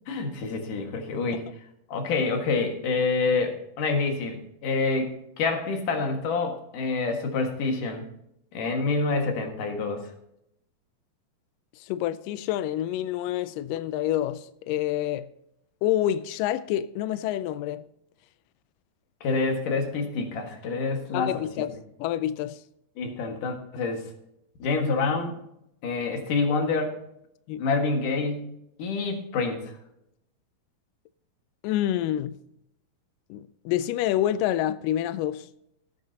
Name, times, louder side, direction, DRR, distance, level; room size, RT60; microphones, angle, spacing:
voice 1, 0.1-1.4 1.9-8.0 8.5-10.1 19.2-21.7 23.0-24.0 24.6-25.4 25.8-27.0 27.6-28.5 28.8-29.6, left 4 dB, 60° left, 3.0 m, -27 dB
voice 2, 11.8-15.3 15.8-17.9 21.1-22.6 27.5-27.6 31.6-32.4 33.3-35.5, left 12 dB, 85° left, 1.9 m, -28 dB
18.5 x 8.7 x 2.8 m
omnidirectional pair, 4.4 m